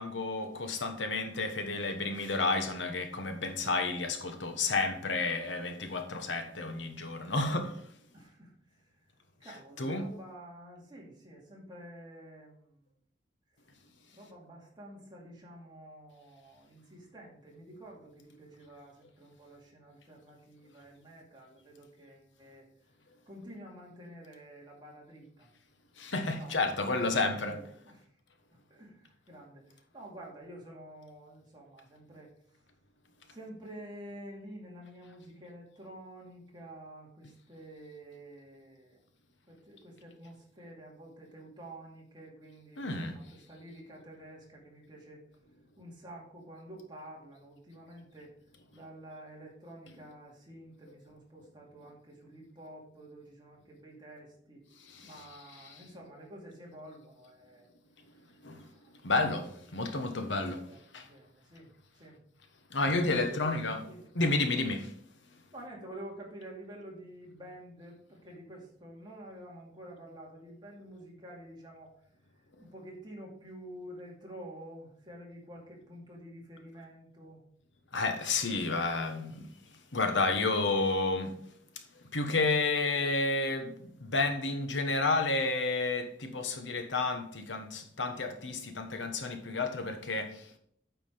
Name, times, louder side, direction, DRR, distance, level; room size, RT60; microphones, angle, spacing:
voice 1, 0.0-7.8 9.8-10.1 26.0-27.6 42.8-43.1 54.9-55.1 58.4-58.7 59.0-60.6 60.9-61.1 62.7-63.8 64.1-64.9 77.9-79.5 79.9-81.3 82.1-90.5, left 3 dB, 80° left, 1.2 m, -31 dB
voice 2, 8.1-9.1 9.4-12.8 14.1-22.7 23.3-25.5 26.3-28.1 28.7-32.3 33.3-39.0 39.5-45.2 45.8-48.3 48.7-54.6 55.0-57.7 58.5-58.9 59.7-59.8 60.2-62.2 62.9-63.4 63.8-64.1 65.5-71.9 72.6-77.4, right 1 dB, 25° right, 2.4 m, -49 dB
9.1 x 5.0 x 5.0 m
head